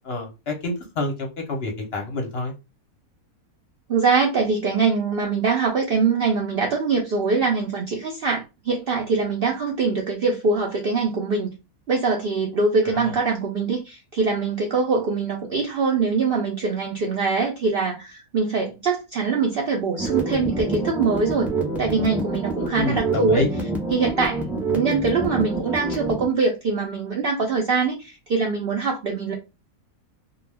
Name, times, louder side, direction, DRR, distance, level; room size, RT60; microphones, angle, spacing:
voice 1, 0.1-2.5 12.9-13.2 22.8-23.5, left 2 dB, 55° left, 0.7 m, -27 dB
voice 2, 3.9-11.5 11.9-21.5 21.8-23.5 23.9-24.4 24.7-29.3, right 4 dB, 80° right, 0.5 m, -23 dB
sound 1, 20.0-26.3, right 2 dB, ahead, 0.4 m, -27 dB
2.3 x 2.2 x 3.2 m
omnidirectional pair, 1.6 m